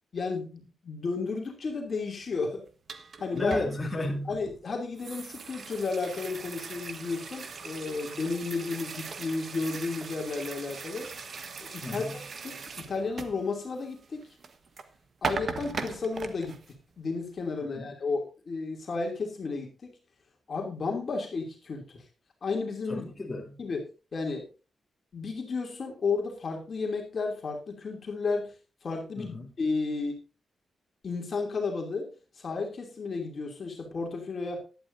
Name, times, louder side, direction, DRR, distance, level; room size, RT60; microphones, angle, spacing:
voice 1, 0.1-2.6 3.2-3.6 4.3-11.1 11.6-14.2 15.2-16.6 17.0-20.0 20.5-22.0 22.4-23.1 23.6-23.8 24.1-24.5 25.1-28.5 28.8-30.2 31.0-32.1 32.4-34.6, left 4 dB, 40° left, 1 dB, 2.8 m, -33 dB
sound 1, 2.7-14.9 15.2-16.7, right 5 dB, 45° right, 1.3 m, -40 dB
voice 2, 3.3-4.4 11.8-12.3 17.6-17.9 22.9-23.6 29.2-29.5, left 2 dB, 15° left, -1 dB, 3.1 m, -34 dB
17.5 x 11.5 x 2.7 m, 0.33 s
wide cardioid pair, 165°, 0 cm